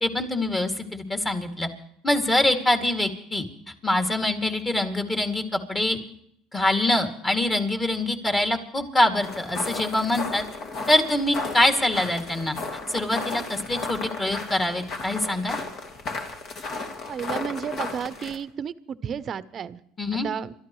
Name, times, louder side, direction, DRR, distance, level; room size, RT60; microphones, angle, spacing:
voice 1, 0.0-1.7 2.0-6.0 6.5-10.4 10.9-12.6 12.9-15.6 20.0-20.3, left 1 dB, 20° left, 5 dB, 2.4 m, -24 dB
sound 1, 9.2-18.4, left 3 dB, 50° left, 2.7 m, -34 dB
voice 2, 17.1-19.8 20.1-20.5, right 7 dB, 40° right, 15 dB, 0.8 m, -32 dB
28.5 x 13.5 x 3.1 m, 0.70 s
supercardioid pair, 100°, 0 cm